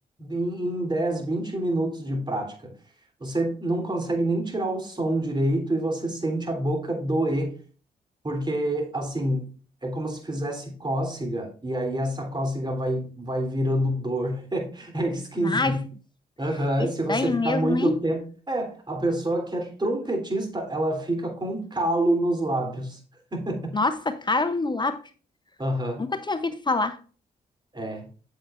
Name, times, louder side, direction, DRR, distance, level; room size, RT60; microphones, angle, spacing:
voice 1, 0.2-2.7 3.2-7.6 8.2-9.4 9.8-15.8 16.4-18.2 18.5-23.0 23.3-23.7 25.6-26.0 27.7-28.1, right 1 dB, 25° right, 3.2 m, -27 dB
voice 2, 15.4-15.7 16.8-18.0 23.7-25.0 26.0-27.0, left 3 dB, 25° left, 0.7 m, -26 dB
8.3 x 7.7 x 2.5 m
cardioid pair, 60°, 17 cm